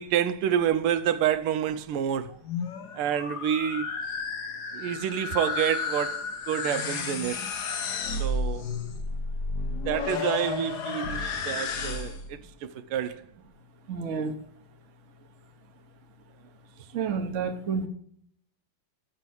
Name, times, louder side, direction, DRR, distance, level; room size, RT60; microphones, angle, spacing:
voice 1, 0.0-2.3 2.9-3.9 4.7-7.5 8.2-8.7 9.9-13.2, right 9 dB, 85° right, 1.5 m, -28 dB
sound 1, 2.3-12.3, left 4 dB, 60° left, 1.3 m, -32 dB
voice 2, 13.9-14.3 16.9-17.9, right 5 dB, 45° right, 1.2 m, -29 dB
7.6 x 6.0 x 6.8 m
omnidirectional pair, 2.4 m